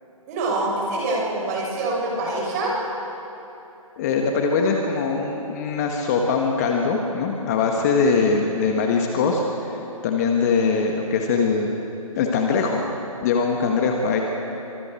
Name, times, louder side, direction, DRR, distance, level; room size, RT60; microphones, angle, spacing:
voice 1, 0.3-2.7, right 2 dB, 30° right, -3 dB, 7.2 m, -25 dB
voice 2, 4.0-11.7 12.2-12.8 13.2-14.2, left 4 dB, 25° left, 2 dB, 1.8 m, -22 dB
28.0 x 25.5 x 4.6 m, 3.0 s
figure-of-eight pair, 140°, 18 cm